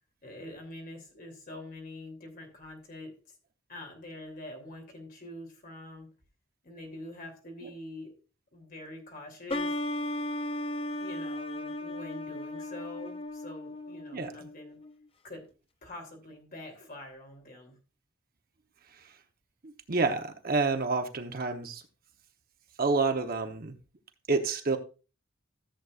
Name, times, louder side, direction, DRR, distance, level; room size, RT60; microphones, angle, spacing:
voice 1, 0.2-3.1 3.7-6.1 6.6-8.1 8.5-9.7 11.0-14.8 15.2-15.4 15.8-17.8, left 1 dB, 45° left, 2 dB, 2.9 m, -45 dB
sound 1, 9.5-14.9, left 1 dB, 30° left, 0.5 m, -36 dB
voice 2, 14.1-14.5 19.6-21.8 22.8-23.8 24.3-24.8, right 3 dB, 45° right, 6 dB, 0.9 m, -29 dB
14.0 x 7.8 x 2.4 m, 0.33 s
head